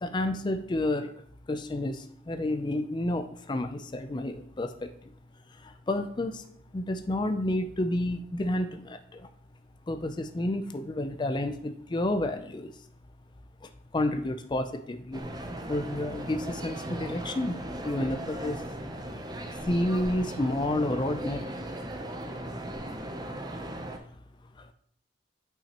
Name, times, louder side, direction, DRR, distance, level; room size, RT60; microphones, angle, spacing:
voice 1, 0.0-1.1 1.5-4.9 5.6-6.4 6.7-9.3 9.9-12.7 13.6-15.3 15.7-18.6 19.6-21.5, left 1 dB, 25° left, 8 dB, 0.4 m, -30 dB
sound 1, 15.1-24.0, right 1 dB, 20° right, 0.6 m, -37 dB
8.8 x 5.6 x 2.9 m, 0.64 s
head